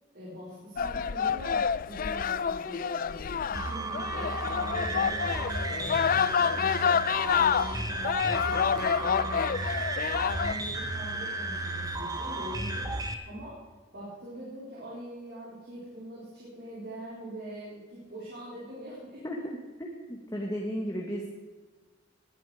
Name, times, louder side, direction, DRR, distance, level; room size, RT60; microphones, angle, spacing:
voice 1, 0.1-3.2 3.5-9.7 10.3-12.9 13.3-13.6 13.9-19.3, equal, 55° right, -6 dB, 4.2 m, -42 dB
sound 1, 0.8-10.5, left 7 dB, 45° left, 0.4 m, -28 dB
sound 2, 3.5-13.1, right 2 dB, 20° right, 1.1 m, -34 dB
voice 2, 19.8-21.4, equal, 20° left, -1 dB, 1.7 m, -34 dB
19.0 x 10.5 x 5.0 m, 1.3 s
head